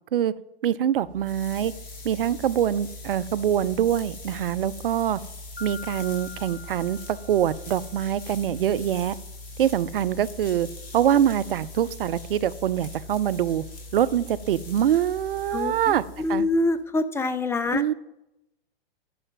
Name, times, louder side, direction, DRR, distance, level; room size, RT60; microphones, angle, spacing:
voice 1, 0.6-1.7 2.0-5.2 5.6-9.1 9.6-10.7 10.9-13.6 13.9-16.0 16.3-16.5 17.7-17.9, right 10 dB, 65° right, 15 dB, 0.6 m, -24 dB
sound 1, 1.0-16.8, left 2 dB, 30° left, 2.9 m, -41 dB
Mallet percussion, 5.6-8.1, left 6 dB, 85° left, 1.0 m, -44 dB
voice 2, 16.2-17.8, left 2 dB, 10° left, 13 dB, 0.5 m, -25 dB
10.5 x 5.7 x 7.3 m, 0.87 s
figure-of-eight pair, 105°, 30 cm